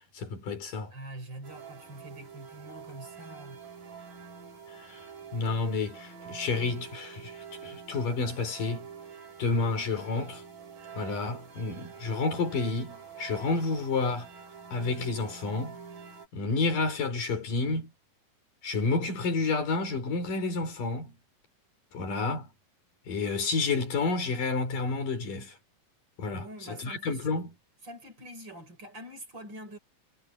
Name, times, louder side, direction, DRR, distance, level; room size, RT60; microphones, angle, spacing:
voice 1, 0.1-0.9 4.7-5.0 5.3-8.9 9.4-10.4 10.9-14.3 14.7-15.8 16.3-17.9 18.6-21.2 21.9-22.5 23.1-25.6 26.2-27.5, left 3 dB, 75° left, 6.1 m, -30 dB
voice 2, 0.9-3.7 26.3-27.4 27.8-29.8, right 1 dB, 35° right, 4.7 m, -45 dB
sound 1, 1.4-16.3, right 7 dB, 75° right, 5.8 m, -46 dB
omnidirectional pair, 3.8 m